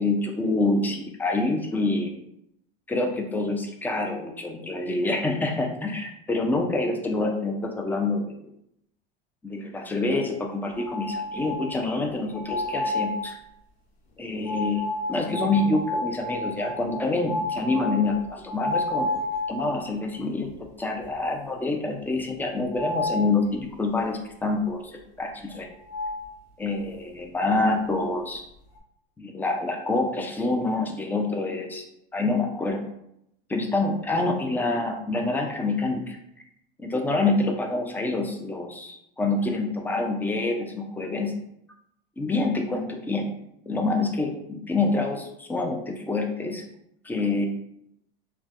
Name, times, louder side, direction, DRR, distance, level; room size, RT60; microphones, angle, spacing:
voice 1, 0.0-2.1 2.9-8.3 9.4-13.3 14.2-19.1 19.5-20.5 20.8-25.7 26.6-28.4 29.2-31.9 32.1-32.8 33.5-36.2 36.8-41.3 42.2-43.3 43.7-46.6 47.0-47.5, left 2 dB, 5° left, 2 dB, 0.4 m, -26 dB
sound 1, 10.8-11.9 12.3-13.3 14.5-20.1 20.5-20.6 21.0-21.1 22.7-23.3 25.5-25.6 25.9-26.3, left 2 dB, 65° left, 0.8 m, -30 dB
3.1 x 2.2 x 2.5 m, 0.76 s
hypercardioid pair, 95°, 29 cm